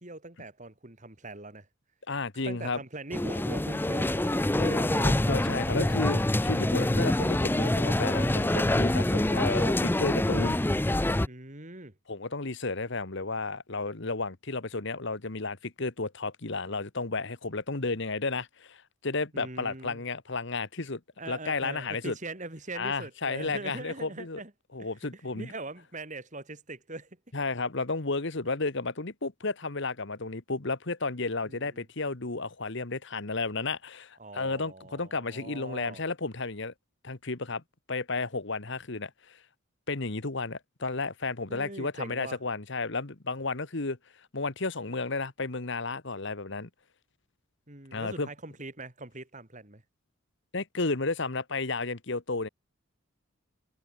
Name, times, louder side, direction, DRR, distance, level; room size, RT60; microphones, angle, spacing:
voice 1, 0.0-1.7 2.4-5.3 5.8-6.1 11.2-11.9 19.3-20.0 21.2-24.5 24.8-27.2 31.5-31.8 34.2-36.0 41.5-42.4 47.7-49.8, right 2 dB, 35° right, 2.7 m, -42 dB
voice 2, 2.1-2.8 4.6-10.6 12.1-21.0 21.3-22.1 22.7-24.4 24.7-25.5 27.3-36.7 37.0-37.6 37.9-39.4 39.9-44.0 44.3-46.7 47.9-48.3 50.5-52.5, left 3 dB, 55° left, 1.4 m, -32 dB
sound 1, 3.1-11.3, left 1 dB, 10° left, 0.5 m, -26 dB
head